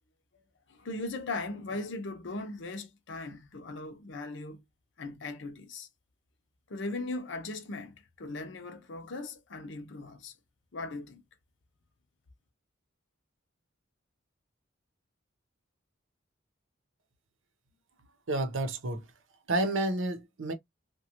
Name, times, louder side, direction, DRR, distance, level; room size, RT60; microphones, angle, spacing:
voice 1, 0.7-4.6 5.0-5.9 6.7-10.3 10.7-11.2, left 2 dB, 65° left, 0.6 m, -38 dB
voice 2, 18.3-19.1 19.5-20.5, right 2 dB, 75° right, 0.7 m, -30 dB
2.9 x 2.2 x 2.8 m
head